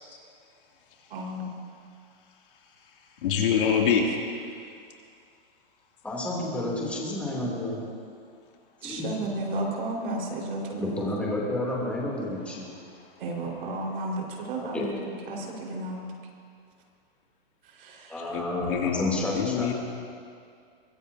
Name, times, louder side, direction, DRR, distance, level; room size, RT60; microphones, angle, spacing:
voice 1, 1.1-1.5 8.8-11.1 13.2-14.9 15.3-16.0 17.8-18.1, right 2 dB, 65° right, -1 dB, 4.8 m, -32 dB
voice 2, 3.2-4.0 18.3-19.7, left 7 dB, 60° left, -1 dB, 2.8 m, -25 dB
voice 3, 6.0-7.8 8.8-9.3 10.8-12.7 14.6-14.9 18.1-19.7, left 1 dB, 5° left, -5 dB, 3.1 m, -30 dB
24.0 x 21.0 x 2.8 m, 2.3 s
hypercardioid pair, 160°, 30 cm